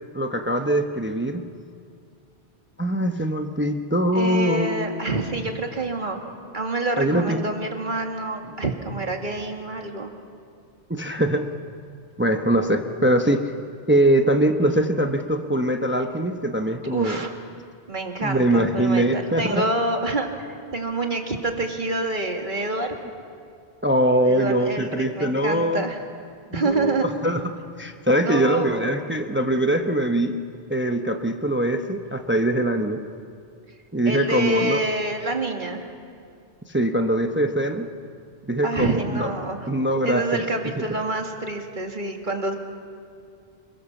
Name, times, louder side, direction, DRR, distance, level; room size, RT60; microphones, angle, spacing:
voice 1, 0.1-1.4 2.8-5.0 7.0-7.4 10.9-11.5 12.2-13.5 13.9-17.2 18.2-19.6 23.8-25.8 26.5-27.4 27.8-30.3 30.7-33.0 33.9-34.8 36.7-37.9 38.5-39.3 39.7-40.4 40.8-40.9, right 1 dB, 10° right, 5 dB, 0.9 m, -22 dB
voice 2, 4.1-6.2 6.5-10.1 16.9-17.3 17.9-23.0 24.2-26.0 26.5-27.1 28.2-28.9 34.1-35.9 38.6-39.7 40.0-42.6, right 2 dB, 50° right, 3 dB, 2.3 m, -27 dB
27.0 x 23.0 x 7.3 m, 2.4 s
omnidirectional pair, 1.1 m